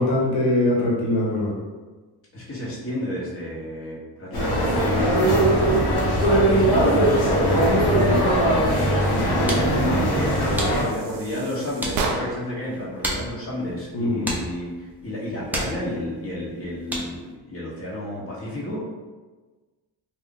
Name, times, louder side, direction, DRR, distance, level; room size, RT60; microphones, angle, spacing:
voice 1, 0.0-1.5 7.1-7.2 7.9-8.2 13.9-14.3, left 1 dB, 85° left, -5 dB, 1.1 m, -23 dB
voice 2, 2.3-7.7 8.3-18.8, left 1 dB, 25° left, -7 dB, 1.1 m, -31 dB
sound 1, 4.3-10.8, right 1 dB, 50° left, 1.2 m, -20 dB
sound 2, 9.0-17.3, right 1 dB, 5° right, 0.7 m, -35 dB
sound 3, 9.5-12.6, right 4 dB, 55° right, 0.6 m, -33 dB
2.4 x 2.4 x 3.7 m, 1.3 s
supercardioid pair, 65°, 49 cm